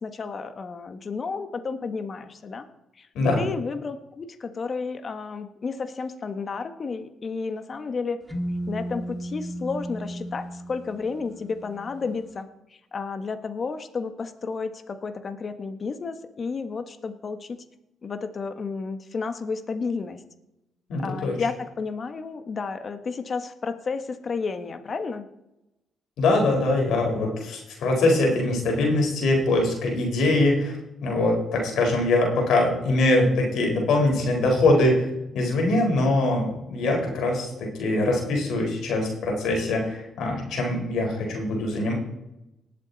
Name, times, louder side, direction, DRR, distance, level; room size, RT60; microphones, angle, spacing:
voice 1, 0.0-2.6 3.0-3.1 3.4-8.2 8.7-17.6 18.0-20.2 21.0-25.3, left 4 dB, 45° left, 9 dB, 1.3 m, -32 dB
sound 1, 8.3-12.1, right 1 dB, 5° left, 2.0 m, -34 dB
voice 2, 20.9-21.4 26.2-30.8 31.0-35.1 35.3-41.9, left 2 dB, 75° left, 0 dB, 4.4 m, -23 dB
19.5 x 7.4 x 4.1 m, 0.90 s
supercardioid pair, 60°, 0 cm